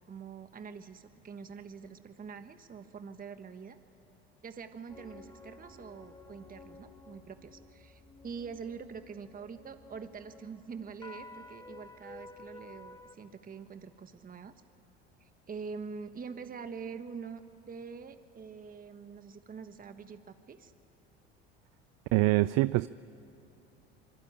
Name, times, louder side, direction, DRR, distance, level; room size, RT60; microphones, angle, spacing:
voice 1, 0.0-3.8 4.4-14.5 15.2-20.7, right 5 dB, 30° right, 1.4 m, -45 dB
sound 1, 4.9-13.2, left 2 dB, 15° left, 5.5 m, -52 dB
voice 2, 22.1-22.9, right 19 dB, 60° right, 0.5 m, -24 dB
26.0 x 23.0 x 8.9 m
hypercardioid pair, 75°, 30 cm